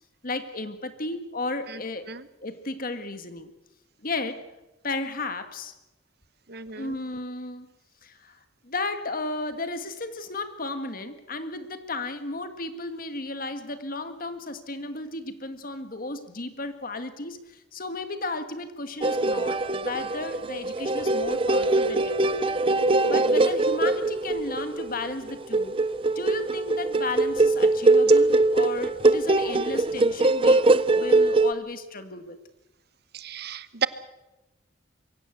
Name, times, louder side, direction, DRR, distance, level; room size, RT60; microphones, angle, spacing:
voice 1, 0.2-2.1 2.4-3.5 4.0-4.4 4.8-5.7 6.7-7.7 8.0-8.4 8.6-22.6 23.1-25.8 26.1-30.6 30.9-32.4, left 2 dB, 50° left, 9 dB, 1.7 m, -34 dB
voice 2, 6.5-7.0 23.1-23.5 33.1-33.9, right 6 dB, 55° right, 15 dB, 0.9 m, -33 dB
sound 1, 19.0-31.5, right 2 dB, 30° right, 0.6 m, -22 dB
23.0 x 16.0 x 8.1 m, 1.0 s
head